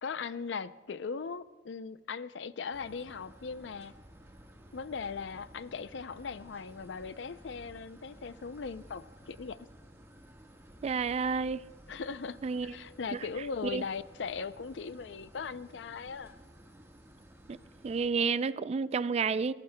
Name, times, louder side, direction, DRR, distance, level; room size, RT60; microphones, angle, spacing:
voice 1, 0.0-3.9 4.7-9.6 11.9-12.4 12.6-16.4, left 5 dB, 80° left, 0.5 m, -39 dB
sound 1, 2.7-18.1, equal, 15° right, 1.4 m, -55 dB
voice 2, 10.8-11.6 12.4-12.8 13.1-13.2 13.7-13.8 17.5-17.6 17.8-19.5, right 5 dB, 35° right, 0.3 m, -30 dB
27.0 x 14.5 x 2.2 m
head